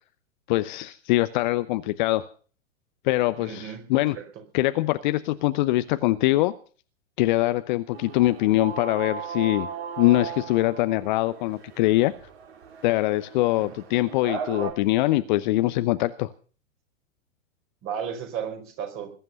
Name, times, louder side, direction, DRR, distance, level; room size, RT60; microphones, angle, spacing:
voice 1, 0.5-2.3 3.0-4.2 4.5-6.5 7.2-9.7 10.0-12.1 12.8-16.3, left 17 dB, 35° left, 0.8 m, -23 dB
voice 2, 3.4-3.8 4.1-4.2 13.6-13.7 17.8-19.1, right 8 dB, 30° right, 5.0 m, -34 dB
sound 1, 7.9-14.7, right 6 dB, 50° right, 5.1 m, -37 dB
21.0 x 11.0 x 5.5 m
figure-of-eight pair, 105°, 41 cm